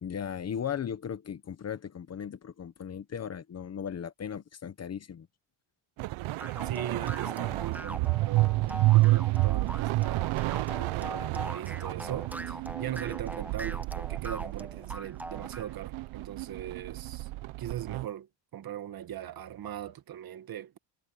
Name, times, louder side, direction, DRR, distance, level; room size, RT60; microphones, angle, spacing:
voice 1, 0.0-5.3, left 8 dB, 30° left, 0.9 m, -37 dB
sound 1, 6.0-18.1, right 20 dB, 75° right, 0.8 m, -30 dB
sound 2, 6.4-15.7, right 1 dB, 5° right, 0.9 m, -41 dB
voice 2, 6.6-17.3 17.6-20.8, right 11 dB, 45° right, 1.6 m, -40 dB
cardioid pair, 165°, 49 cm